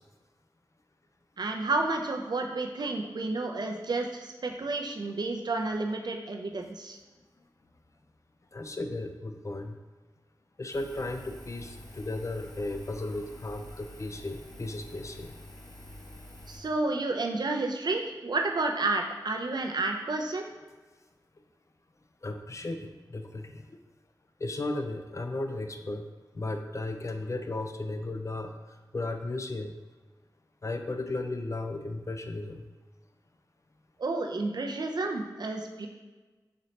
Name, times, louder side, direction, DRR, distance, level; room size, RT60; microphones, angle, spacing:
voice 1, 1.4-7.0 16.5-20.5 34.0-35.9, right 3 dB, 65° right, 2 dB, 0.5 m, -31 dB
voice 2, 8.5-9.7 10.6-15.3 22.2-23.6 24.4-26.0 26.3-28.5 28.9-29.7 30.6-32.6, left 2 dB, 40° left, 6 dB, 0.4 m, -35 dB
Engine, 10.7-16.6, left 1 dB, 70° left, 1.3 m, -47 dB
4.1 x 2.8 x 3.1 m, 1.3 s
cardioid pair, 45°, 8 cm